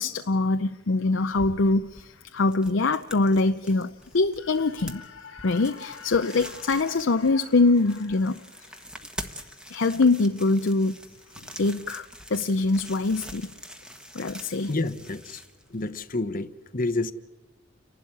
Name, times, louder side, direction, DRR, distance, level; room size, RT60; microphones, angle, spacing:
voice 1, 0.0-5.0 5.4-8.4 9.7-11.0 11.6-13.5 14.1-14.7, left 3 dB, 65° left, 9 dB, 0.6 m, -23 dB
sound 1, 0.6-13.0 13.3-13.4, left 6 dB, 80° left, 1.6 m, -50 dB
sound 2, 1.0-16.2, equal, 5° right, 1.3 m, -45 dB
voice 2, 14.7-15.4 15.7-17.1, left 2 dB, 45° left, 11 dB, 1.0 m, -29 dB
30.0 x 12.0 x 9.9 m, 1.2 s
head